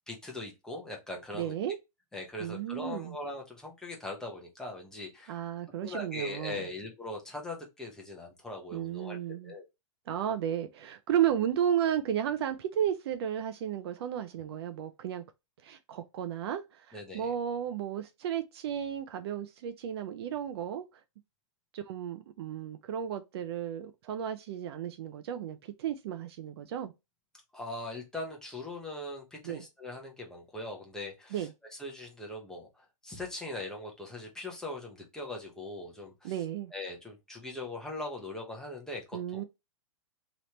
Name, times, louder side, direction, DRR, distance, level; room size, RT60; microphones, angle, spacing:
voice 1, 0.1-1.5 2.1-5.4 5.8-9.2 9.4-9.6 16.9-17.3 27.5-31.5 31.8-36.4 36.7-39.4, left 2 dB, 5° left, 0.8 m, -40 dB
voice 2, 1.3-1.8 2.4-3.2 5.3-6.6 8.7-9.5 10.1-15.2 15.6-20.9 21.7-26.9 29.4-29.7 31.3-31.5 36.2-36.7 39.1-39.4, right 9 dB, 50° right, 0.4 m, -33 dB
3.1 x 2.9 x 2.8 m
hypercardioid pair, 150°, 17 cm